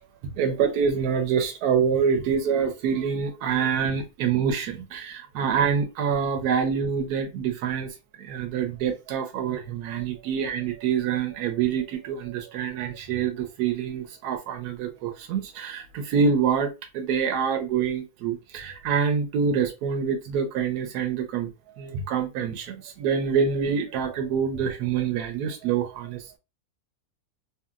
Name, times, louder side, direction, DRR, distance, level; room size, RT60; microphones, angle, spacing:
voice 1, 0.4-7.9 8.2-21.5 21.8-26.4, right 6 dB, 85° right, 1.1 m, -26 dB
2.9 x 2.7 x 2.3 m
omnidirectional pair, 1.6 m